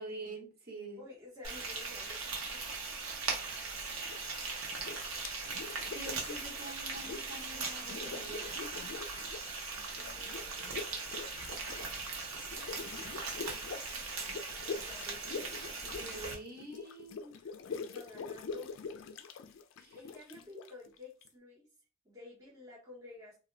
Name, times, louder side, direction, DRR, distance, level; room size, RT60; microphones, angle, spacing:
voice 1, 0.0-1.0 5.9-8.7 15.9-17.3 19.8-20.0, right 2 dB, 45° right, 1.0 m, -46 dB
voice 2, 1.0-2.6 9.9-11.3 13.5-14.2 14.8-15.5 17.4-17.6 17.9-18.7 19.9-21.7 22.0-23.4, left 2 dB, 15° right, 0.7 m, -52 dB
Frying (food), 1.4-16.3, right 4 dB, 80° right, 0.8 m, -39 dB
sound 1, 4.0-4.4 4.7-7.5 7.8-9.5 9.8-21.3, left 5 dB, 65° left, 0.3 m, -44 dB
2.6 x 2.0 x 3.7 m
head